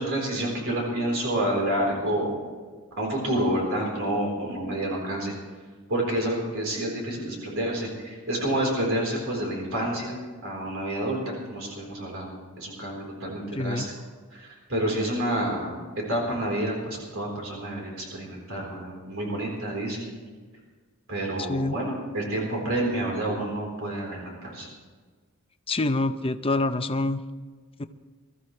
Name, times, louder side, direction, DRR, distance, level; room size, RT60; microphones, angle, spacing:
voice 1, 0.0-2.4 3.0-5.3 5.9-11.2 11.5-13.9 14.3-20.1 21.1-24.7, right 1 dB, 65° right, -1 dB, 4.1 m, -29 dB
voice 2, 13.5-13.9 21.5-21.7 25.7-27.2 27.8-27.9, left 2 dB, 25° left, 9 dB, 0.6 m, -26 dB
22.5 x 14.0 x 3.3 m, 1.5 s
head